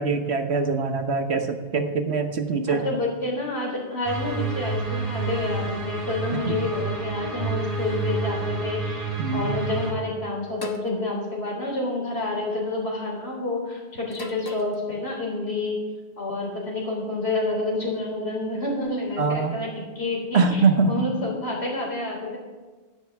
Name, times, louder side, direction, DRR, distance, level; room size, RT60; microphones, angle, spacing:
voice 1, 0.0-2.9 6.5-6.6 9.2-9.5 19.2-19.5 20.3-21.1, right 4 dB, 70° right, 7 dB, 1.3 m, -23 dB
voice 2, 2.7-15.8 16.2-22.4, left 2 dB, 65° left, -2 dB, 3.9 m, -29 dB
sound 1, 4.0-9.9, right 3 dB, 35° right, 2.6 m, -29 dB
sound 2, 10.6-10.9 12.1-12.5 14.1-14.8, left 1 dB, 20° left, 0.8 m, -38 dB
15.5 x 12.0 x 3.5 m, 1.3 s
omnidirectional pair, 1.1 m